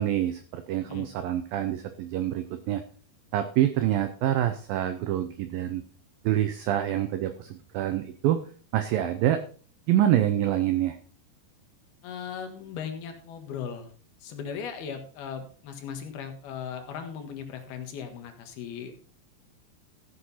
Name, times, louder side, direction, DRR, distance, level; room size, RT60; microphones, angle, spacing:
voice 1, 0.0-2.8 3.3-5.8 6.3-8.4 8.7-9.4 9.9-11.0, right 12 dB, 80° right, 10 dB, 2.1 m, -26 dB
voice 2, 12.0-13.9 14.2-18.9, left 7 dB, 65° left, 5 dB, 3.3 m, -38 dB
14.5 x 7.9 x 4.1 m, 0.40 s
omnidirectional pair, 5.0 m